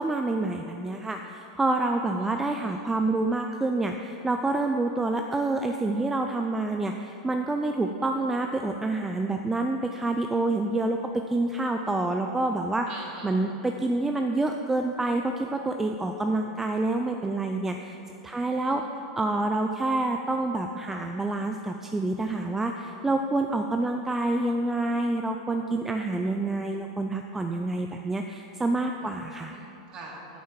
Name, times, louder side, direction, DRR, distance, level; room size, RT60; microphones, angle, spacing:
voice 1, 0.0-12.9 13.2-18.0 18.2-18.8 19.2-29.6, right 2 dB, 10° right, 4 dB, 0.5 m, -27 dB
voice 2, 2.2-2.9 12.9-13.6 17.8-18.0 18.4-18.9 29.0-29.2 29.5-30.4, right 2 dB, 40° right, -3 dB, 2.7 m, -45 dB
9.2 x 6.3 x 7.4 m, 2.9 s
hypercardioid pair, 95°, 3 cm